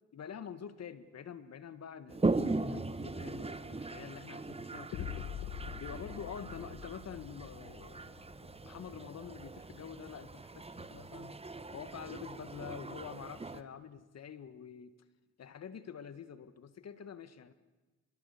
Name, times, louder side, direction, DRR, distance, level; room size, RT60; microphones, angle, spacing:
voice 1, 0.1-5.1 5.8-8.1 8.4-11.4 11.7-15.0 15.4-17.5, left 7 dB, 55° left, 13 dB, 1.7 m, -47 dB
Toilet flush, 2.1-13.6, right 3 dB, 20° right, 1.4 m, -39 dB
sound 1, 4.9-8.9, left 10 dB, 80° left, 1.4 m, -44 dB
27.0 x 22.5 x 8.4 m, 1.2 s
supercardioid pair, 65°, 30 cm